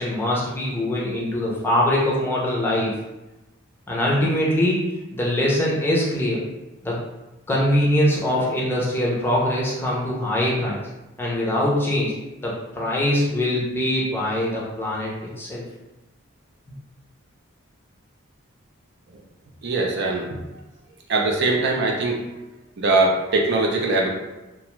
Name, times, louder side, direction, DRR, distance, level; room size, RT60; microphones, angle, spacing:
voice 1, 0.0-2.9 3.9-4.8 5.1-6.4 6.8-6.9 7.5-10.8 11.2-12.1 12.4-15.1 15.4-15.6, left 1 dB, 10° left, -5 dB, 0.5 m, -22 dB
voice 2, 19.6-20.2 21.1-22.2 22.8-24.1, right 2 dB, 55° right, 0 dB, 0.5 m, -21 dB
2.4 x 2.2 x 3.0 m, 1.0 s
head